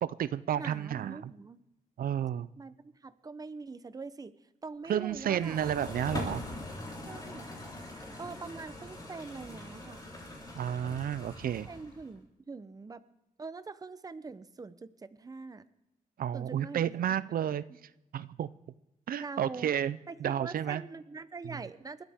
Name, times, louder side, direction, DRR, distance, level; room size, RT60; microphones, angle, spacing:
voice 1, 0.0-1.3 2.0-2.5 4.9-6.4 10.5-11.7 16.2-17.7 18.1-18.5 19.1-20.8 21.4-21.6, right 10 dB, 90° right, 16 dB, 0.5 m, -31 dB
voice 2, 0.6-1.6 2.6-4.3 4.6-5.6 7.0-7.5 8.2-10.1 11.7-13.0 13.4-15.7 16.3-16.9 19.2-19.7 20.1-22.0, right 4 dB, 25° right, 13 dB, 0.7 m, -43 dB
sound 1, 5.1-12.1, left 2 dB, 25° left, 3.7 m, -42 dB
29.0 x 13.0 x 3.6 m, 0.90 s
wide cardioid pair, 150°, 15 cm